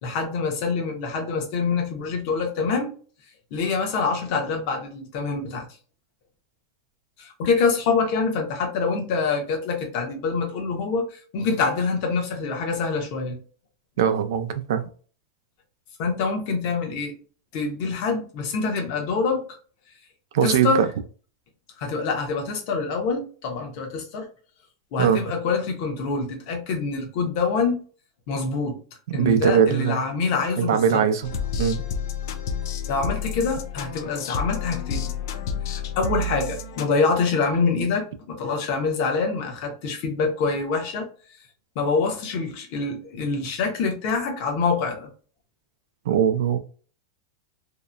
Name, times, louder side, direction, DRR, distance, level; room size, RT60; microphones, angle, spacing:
voice 1, 0.0-2.9 3.5-5.7 7.2-13.4 16.0-17.1 17.5-19.5 20.4-20.8 21.8-24.3 24.9-27.8 28.3-28.8 29.1-31.1 32.9-35.1 35.7-41.1 41.7-45.1, left 4 dB, 45° left, 2 dB, 0.8 m, -25 dB
voice 2, 14.0-14.8 20.3-20.7 25.0-25.2 29.1-30.0 30.6-31.2 31.6-31.8 46.1-46.6, right 8 dB, 75° right, 9 dB, 0.4 m, -21 dB
sound 1, 31.2-36.9, left 5 dB, 65° left, 0.4 m, -30 dB
2.8 x 2.1 x 2.4 m, 0.40 s
supercardioid pair, 165°, 2 cm